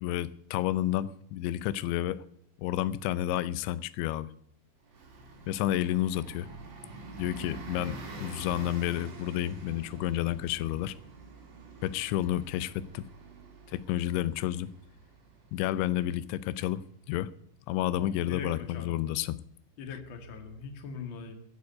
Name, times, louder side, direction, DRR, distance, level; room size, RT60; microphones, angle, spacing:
voice 1, 0.0-2.2 2.6-4.3 5.5-6.5 7.2-11.0 11.8-13.1 13.7-14.7 15.5-16.8 17.1-17.3 17.7-19.4, left 13 dB, 85° left, 3.0 m, -30 dB
Bus, 4.9-17.2, right 3 dB, 40° right, 3.6 m, -47 dB
voice 2, 17.9-19.0 19.8-21.3, left 5 dB, 45° left, 1.6 m, -41 dB
14.5 x 6.9 x 9.3 m
omnidirectional pair, 5.2 m